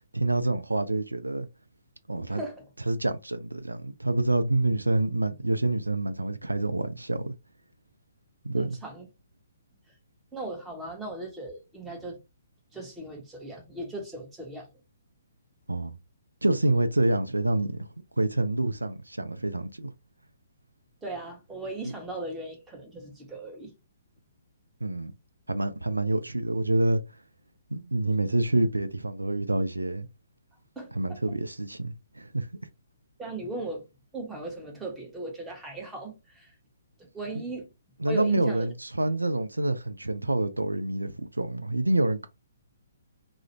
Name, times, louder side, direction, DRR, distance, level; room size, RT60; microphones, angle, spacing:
voice 1, 0.1-1.5 2.1-2.4 2.9-7.3 8.4-8.8 15.7-16.0 16.4-17.9 18.2-19.9 21.8-21.9 24.8-25.1 25.5-27.0 27.7-30.1 30.9-32.5 38.0-42.3, right 2 dB, 85° right, 0.3 m, -27 dB
voice 2, 2.3-2.6 8.6-9.1 10.3-12.2 12.7-14.7 21.0-23.7 30.8-31.2 33.2-33.8 34.1-36.5 37.1-37.7 38.1-38.7, right 2 dB, 10° right, 0.8 m, -38 dB
2.4 x 2.0 x 2.9 m
figure-of-eight pair, 130°, 0 cm